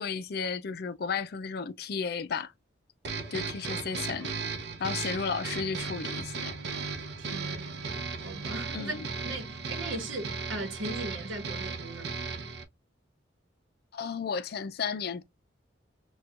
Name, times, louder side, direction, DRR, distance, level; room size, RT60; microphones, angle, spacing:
voice 1, 0.0-2.5 3.3-4.3 4.8-6.5 8.7-9.1 13.9-15.2, left 5 dB, 50° left, 0.4 m, -33 dB
sound 1, 3.0-12.6, right 4 dB, 55° right, 0.6 m, -36 dB
voice 2, 7.2-8.9 9.2-12.1, right 2 dB, 80° right, 1.0 m, -39 dB
4.3 x 2.3 x 2.4 m
head